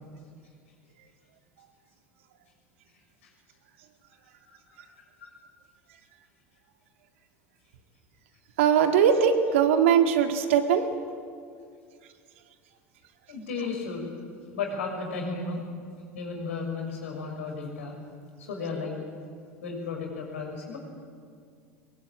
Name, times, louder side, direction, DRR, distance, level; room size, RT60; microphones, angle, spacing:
voice 1, 4.5-4.9 13.3-14.1 14.5-15.6 16.1-17.9 18.4-19.0 19.6-20.8, left 4 dB, 70° left, 1 dB, 6.2 m, -34 dB
voice 2, 8.6-10.9, right 8 dB, 65° right, 6 dB, 2.1 m, -21 dB
22.0 x 22.0 x 8.9 m, 2.2 s
figure-of-eight pair, 70°, 7 cm